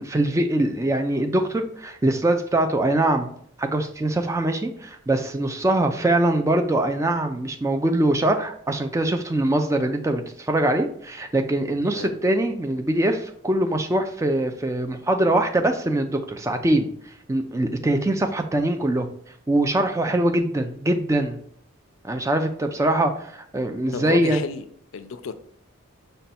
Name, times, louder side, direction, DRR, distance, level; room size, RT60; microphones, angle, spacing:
voice 1, 0.0-3.3 3.6-16.9 17.3-19.1 19.5-21.4 22.0-24.4, right 1 dB, 15° right, 5 dB, 0.3 m, -23 dB
voice 2, 11.8-12.2 23.9-24.6 24.9-25.3, left 5 dB, 75° left, 11 dB, 0.4 m, -31 dB
5.1 x 2.2 x 4.2 m, 0.64 s
head